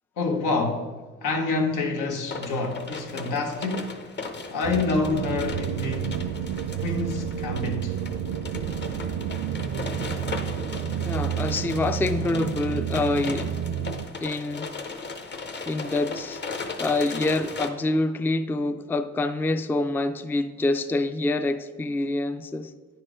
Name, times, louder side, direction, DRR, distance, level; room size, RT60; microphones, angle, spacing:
voice 1, 0.2-0.9 1.2-4.0 4.5-6.2 6.8-8.0, left 3 dB, 90° left, 1.3 m, -27 dB
sound 1, 2.3-17.7, left 4 dB, 35° left, 0.8 m, -37 dB
sound 2, 4.6-14.1, right 9 dB, 65° right, 0.5 m, -30 dB
voice 2, 11.0-13.5 14.2-14.7 15.7-16.4 16.8-22.7, left 2 dB, 5° left, 0.3 m, -26 dB
9.6 x 4.5 x 5.0 m
cardioid pair, 90°, 30 cm